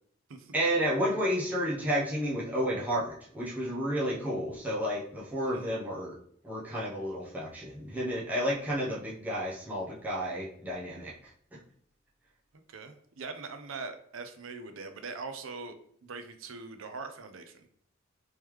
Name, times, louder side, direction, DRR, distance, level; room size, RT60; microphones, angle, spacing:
voice 1, 0.5-6.2 6.4-11.3, equal, 10° right, -6 dB, 0.7 m, -31 dB
voice 2, 12.7-15.7 16.0-17.7, right 4 dB, 80° right, 7 dB, 0.6 m, -42 dB
3.6 x 3.1 x 3.0 m, 0.62 s
head